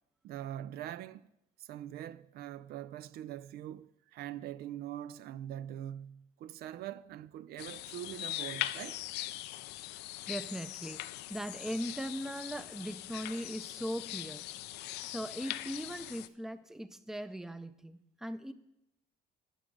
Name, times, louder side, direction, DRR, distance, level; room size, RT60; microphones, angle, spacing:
voice 1, 0.2-1.3 1.6-9.0, right 11 dB, 65° right, 0.4 m, -43 dB
sound 1, 7.6-16.3, left 15 dB, 85° left, 0.5 m, -41 dB
voice 2, 10.3-11.0 11.3-14.4 15.1-18.5, equal, 5° right, 0.5 m, -39 dB
11.0 x 5.1 x 7.4 m
cardioid pair, 110°, 17 cm